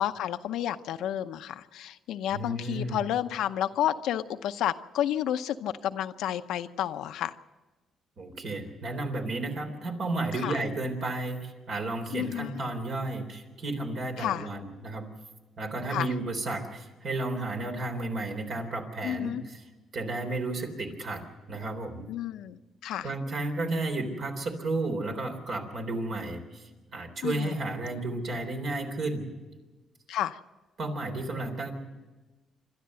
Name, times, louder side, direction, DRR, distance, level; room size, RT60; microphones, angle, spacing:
voice 1, 0.0-7.3 10.4-10.6 12.1-12.6 14.2-14.5 15.9-16.1 19.0-19.4 22.1-23.1 27.2-27.6 30.1-30.4, left 11 dB, 85° left, 10 dB, 0.7 m, -31 dB
voice 2, 2.3-3.0 8.2-15.1 15.6-19.6 19.9-21.2 21.5-22.1 23.0-29.3 30.8-31.7, right 2 dB, 60° right, 3 dB, 3.6 m, -32 dB
27.5 x 12.5 x 7.7 m, 1.2 s
cardioid pair, 90°, 0 cm